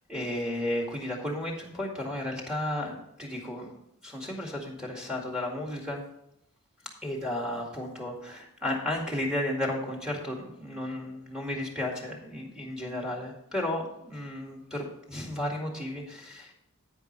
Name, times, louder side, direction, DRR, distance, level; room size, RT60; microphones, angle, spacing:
voice 1, 0.1-3.7 4.0-6.0 7.0-16.5, left 1 dB, 5° right, 0 dB, 2.1 m, -33 dB
10.5 x 9.1 x 3.3 m, 0.81 s
head